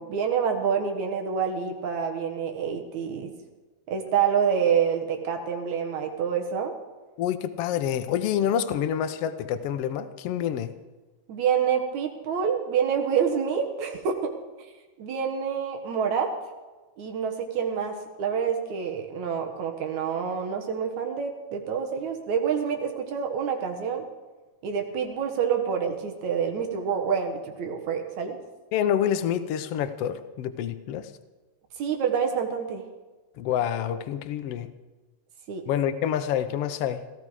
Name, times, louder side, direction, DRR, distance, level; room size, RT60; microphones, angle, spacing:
voice 1, 0.0-3.3 3.9-6.8 11.3-14.3 14.6-14.7 15.0-16.3 17.0-24.0 24.6-28.4 31.8-32.8 35.5-35.7, right 7 dB, 65° right, 3 dB, 2.7 m, -27 dB
voice 2, 7.2-10.7 28.7-31.1 33.4-34.7 35.7-37.0, left 9 dB, 70° left, 11 dB, 1.5 m, -27 dB
17.0 x 14.5 x 4.9 m, 1.2 s
omnidirectional pair, 3.6 m